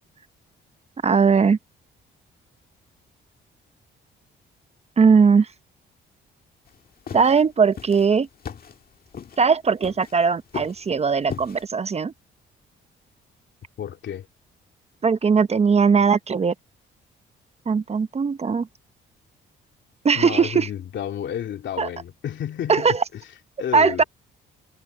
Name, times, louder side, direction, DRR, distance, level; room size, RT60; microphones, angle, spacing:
voice 1, 1.0-1.6 5.0-5.5 7.1-8.3 9.4-12.1 15.0-16.5 17.7-18.7 20.0-20.7 21.8-21.9 22.7-23.0 23.7-24.0, right 5 dB, 30° right, 0.8 m, -19 dB
sound 1, 6.7-11.7, left 7 dB, 50° left, 1.9 m, -38 dB
voice 2, 13.8-14.3 20.1-23.2 23.6-24.0, left 10 dB, 70° left, 3.2 m, -31 dB
cardioid pair, 90°, 20 cm